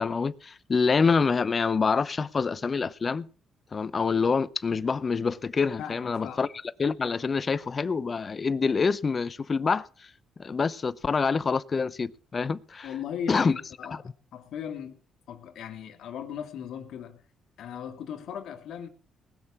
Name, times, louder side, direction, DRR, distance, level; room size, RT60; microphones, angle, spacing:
voice 1, 0.0-3.3 3.7-6.5 6.8-10.1 10.4-12.9 13.3-13.5, left 5 dB, 35° left, 0.8 m, -26 dB
voice 2, 5.8-6.4 12.8-15.0 15.3-17.2 17.6-18.9, left 8 dB, 75° left, 2.5 m, -38 dB
19.5 x 6.6 x 7.3 m
cardioid pair, 90°, 0 cm